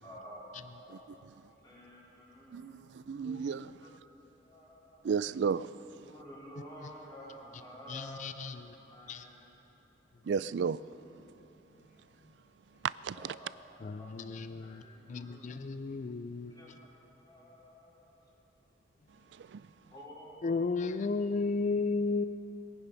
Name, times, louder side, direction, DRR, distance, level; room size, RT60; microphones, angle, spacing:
voice 1, 0.0-3.0 3.8-3.9 4.2-5.1 6.0-9.5 13.1-13.5 14.0-14.3 14.6-18.3 19.9-20.9, equal, 20° left, 4.4 m, -52 dB
voice 2, 0.9-1.3 2.5-3.8 5.0-5.7 10.2-10.9 12.8-13.4 19.3-19.7, right 6 dB, 70° right, 0.4 m, -34 dB
voice 3, 7.9-8.5 9.1-9.2 13.8-14.8 15.1-16.5 20.4-22.3, left 4 dB, 40° left, 0.4 m, -33 dB
22.0 x 9.9 x 5.7 m
head